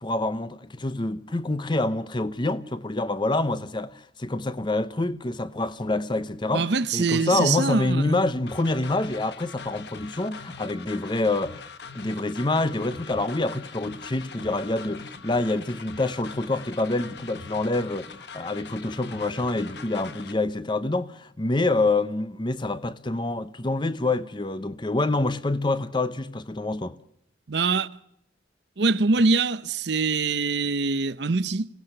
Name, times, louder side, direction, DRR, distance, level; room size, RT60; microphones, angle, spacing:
voice 1, 0.0-11.6 11.9-27.0, left 2 dB, 25° left, 0.7 m, -27 dB
voice 2, 6.5-8.2 27.5-27.9 28.8-31.7, right 4 dB, 65° right, 0.7 m, -24 dB
sound 1, 8.5-20.3, left 5 dB, 60° left, 1.3 m, -42 dB
26.0 x 17.0 x 6.6 m
head